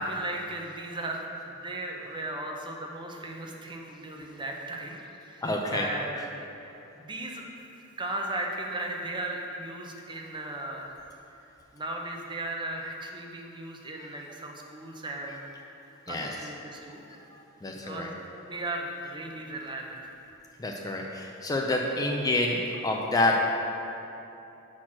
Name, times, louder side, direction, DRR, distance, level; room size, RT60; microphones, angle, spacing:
voice 1, 0.0-7.4 8.0-10.9 11.3-11.4 11.7-15.5 15.8-17.0 17.8-18.1 18.4-20.0, right 1 dB, 20° right, 1 dB, 0.6 m, -36 dB
voice 2, 5.4-5.9 14.0-14.1 15.3-15.4 16.1-16.5 17.3-18.1 20.6-23.5, left 2 dB, 15° left, 0 dB, 0.4 m, -28 dB
6.1 x 4.3 x 6.0 m, 2.9 s
head